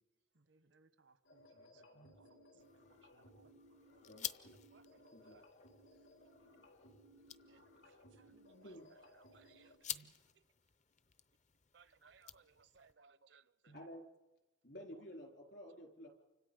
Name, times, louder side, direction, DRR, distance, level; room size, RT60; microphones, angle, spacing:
voice 1, 0.3-3.5 7.5-8.8, right 2 dB, 90° right, 1.2 m, -72 dB
sound 1, 1.2-9.8, left 1 dB, 80° left, 4.3 m, -63 dB
sound 2, 2.6-12.9, left 10 dB, 40° left, 0.7 m, -52 dB
voice 2, 3.2-4.2 4.7-5.5 6.2-6.3 7.5-7.6 8.3-10.4 11.7-13.9 14.9-15.4, right 5 dB, 70° right, 0.7 m, -68 dB
voice 3, 4.0-4.6 5.1-5.4 5.9-6.1 8.6-8.8 9.9-10.1 13.7-14.0 14.6-16.1, equal, 60° left, 3.7 m, -53 dB
29.5 x 25.5 x 5.3 m
head